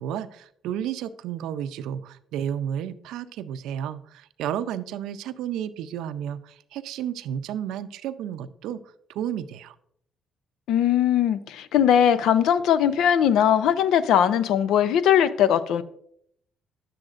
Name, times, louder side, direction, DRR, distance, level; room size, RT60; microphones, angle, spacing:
voice 1, 0.0-8.8 9.1-9.8, right 9 dB, 80° right, 0.5 m, -32 dB
voice 2, 10.7-15.8, left 9 dB, 75° left, 0.5 m, -20 dB
9.9 x 7.7 x 2.5 m
supercardioid pair, 70°, 0 cm